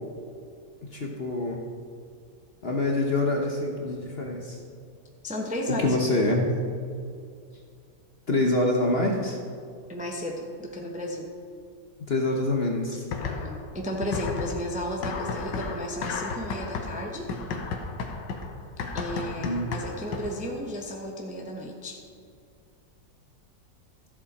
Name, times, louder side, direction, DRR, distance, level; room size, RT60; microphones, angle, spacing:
voice 1, 0.9-1.6 2.6-4.6 5.8-6.6 8.3-9.4 12.1-13.0 19.4-19.7, left 2 dB, 40° left, 0 dB, 1.0 m, -25 dB
voice 2, 5.2-6.0 9.9-11.3 13.2-17.3 18.9-22.0, equal, 5° right, 0 dB, 0.7 m, -34 dB
sound 1, 13.1-13.7 14.0-20.5, left 4 dB, 85° left, 1.6 m, -33 dB
14.0 x 7.5 x 4.2 m, 2.3 s
omnidirectional pair, 1.9 m